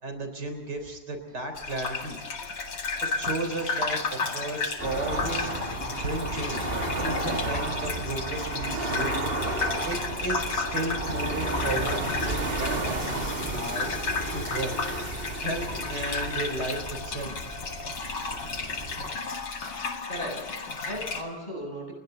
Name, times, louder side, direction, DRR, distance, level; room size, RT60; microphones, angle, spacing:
voice 1, 0.0-2.2 2.6-2.8 3.2-9.1 9.9-14.7 15.4-17.3, right 2 dB, 75° right, 6 dB, 4.5 m, -34 dB
Gurgling / Bathtub (filling or washing), 1.5-21.2, left 4 dB, 90° left, 2.8 m, -33 dB
sound 1, 4.8-19.1, right 2 dB, 35° right, 2.9 m, -32 dB
voice 2, 20.0-21.9, equal, 25° left, 1 dB, 7.5 m, -37 dB
30.0 x 22.0 x 4.0 m, 1.1 s
omnidirectional pair, 1.8 m